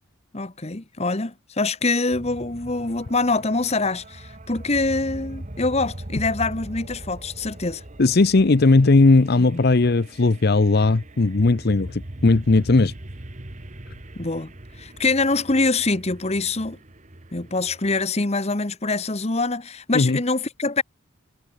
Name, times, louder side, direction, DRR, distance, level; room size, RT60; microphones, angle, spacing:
voice 1, 0.3-7.8 9.4-9.6 14.1-16.8 17.3-20.8, left 3 dB, 30° left, 1.2 m, -24 dB
sound 1, 2.1-18.0, right 1 dB, 35° right, 1.5 m, -40 dB
voice 2, 8.0-12.9 19.9-20.2, left 3 dB, 50° left, 0.7 m, -17 dB
head